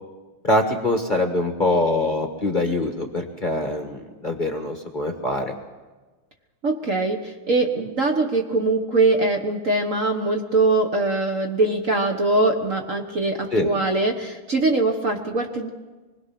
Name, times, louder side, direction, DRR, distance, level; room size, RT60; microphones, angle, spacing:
voice 1, 0.4-5.5 13.5-13.7, left 2 dB, 25° left, 3 dB, 1.4 m, -23 dB
voice 2, 6.6-15.7, right 2 dB, 45° right, 3 dB, 1.4 m, -22 dB
25.0 x 21.0 x 6.0 m, 1.2 s
omnidirectional pair, 2.4 m